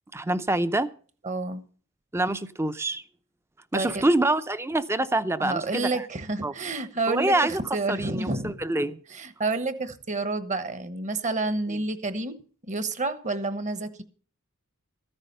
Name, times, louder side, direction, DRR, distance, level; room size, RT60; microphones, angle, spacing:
voice 1, 0.1-0.9 2.1-3.0 3.7-6.0 6.4-6.5 7.1-7.6 7.9-9.0, right 2 dB, 10° right, 0.6 m, -26 dB
voice 2, 1.2-1.6 3.7-4.0 5.4-8.5 9.1-12.4 12.7-14.0, right 3 dB, 35° right, 1.1 m, -29 dB
14.0 x 9.9 x 5.5 m
head